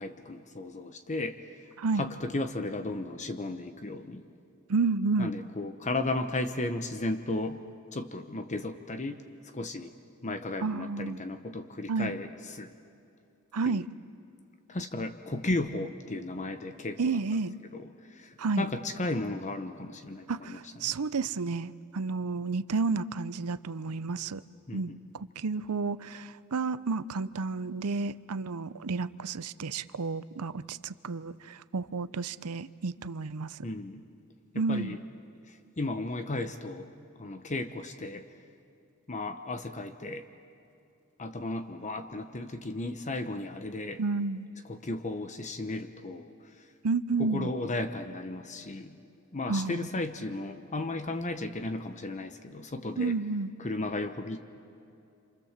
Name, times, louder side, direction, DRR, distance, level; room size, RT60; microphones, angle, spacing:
voice 1, 0.0-1.7 2.0-4.2 5.2-7.6 7.9-9.9 10.2-12.7 13.6-13.8 14.7-17.2 17.7-20.6 20.8-20.9 24.7-25.0 33.6-34.0 34.7-35.0 35.5-36.9 37.2-38.3 39.1-40.3 41.2-44.0 44.7-46.7 47.2-49.1 49.3-53.2 53.6-54.4, left 2 dB, 35° left, 8 dB, 1.0 m, -35 dB
voice 2, 4.7-5.3 10.6-11.2 11.9-12.1 13.5-13.9 17.0-17.5 18.4-18.7 20.3-24.4 24.7-33.6 34.5-35.0 44.0-44.5 46.8-47.5 49.5-49.9 53.0-53.5, right 4 dB, 85° right, 15 dB, 0.7 m, -31 dB
28.0 x 27.0 x 7.4 m, 2.7 s
head